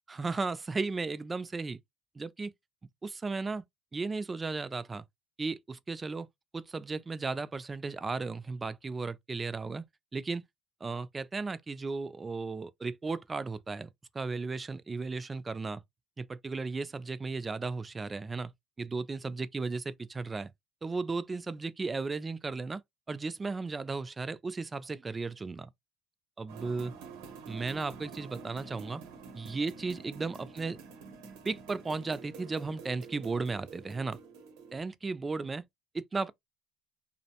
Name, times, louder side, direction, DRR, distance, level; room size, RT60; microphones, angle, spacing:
voice 1, 0.1-1.8 2.2-2.5 3.0-3.6 3.9-5.0 5.4-6.3 6.5-9.8 10.1-10.4 10.8-13.9 14.1-15.8 16.2-18.5 18.8-20.5 20.8-22.8 23.1-25.7 26.4-26.9 27.5-29.0 29.3-30.8 31.4-34.2 34.7-35.6 35.9-36.3, right 4 dB, 20° right, 0.3 m, -35 dB
sound 1, 26.5-34.8, right 5 dB, 80° right, 0.7 m, -48 dB
2.5 x 2.0 x 2.8 m
supercardioid pair, 100°, 0 cm